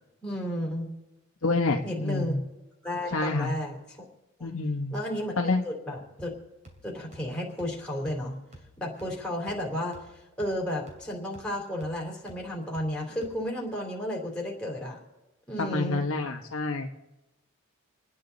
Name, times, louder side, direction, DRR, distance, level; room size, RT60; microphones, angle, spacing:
voice 1, 0.2-0.9 1.8-2.3 2.8-4.0 4.4-4.5 4.9-5.3 5.6-6.3 6.8-8.4 8.8-10.0 10.4-15.0 15.5-16.0, equal, 5° left, -2 dB, 3.2 m, -33 dB
voice 2, 1.4-2.4 3.1-3.5 4.4-4.9 5.4-5.6 15.6-16.9, left 3 dB, 70° left, 3 dB, 1.2 m, -27 dB
sound 1, 6.2-13.7, right 1 dB, 35° right, 2.8 m, -54 dB
29.0 x 9.7 x 4.0 m, 1.0 s
head